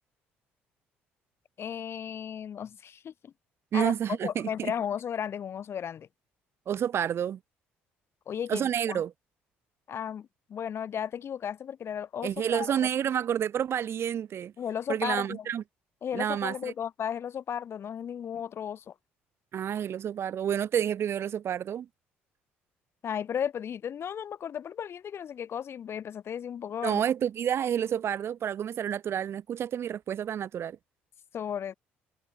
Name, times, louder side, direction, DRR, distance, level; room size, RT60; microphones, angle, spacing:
voice 1, 1.6-3.3 3.7-3.9 4.2-6.1 8.3-9.0 9.9-12.7 14.6-15.4 16.0-18.9 23.0-27.0 31.3-31.7, left 8 dB, 55° left, 4.9 m, -35 dB
voice 2, 3.7-4.7 6.7-7.4 8.5-9.1 12.2-14.5 14.9-15.6 16.1-16.7 19.5-21.9 26.8-30.8, right 9 dB, 55° right, 1.2 m, -29 dB
hypercardioid pair, 60°, 5 cm